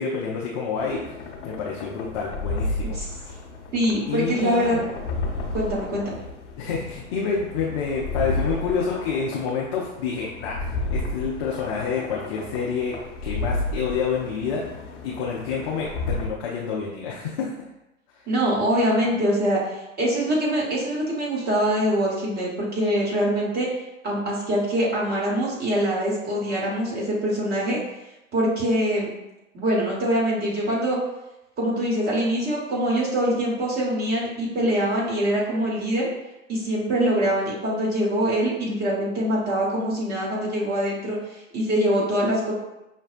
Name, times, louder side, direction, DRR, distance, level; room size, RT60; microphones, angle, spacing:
voice 1, 0.0-3.4 4.1-4.8 6.6-14.6 15.0-17.5, left 5 dB, 25° left, -4 dB, 0.3 m, -28 dB
sound 1, 0.8-16.3, left 2 dB, 60° left, 1.0 m, -32 dB
voice 2, 3.7-4.9 5.5-6.2 18.3-23.7 24.0-27.8 28.3-29.1 29.5-31.0 31.6-36.1 36.5-42.5, equal, 25° right, -5 dB, 1.2 m, -24 dB
5.7 x 2.1 x 2.4 m, 0.95 s
hypercardioid pair, 110°, 40 cm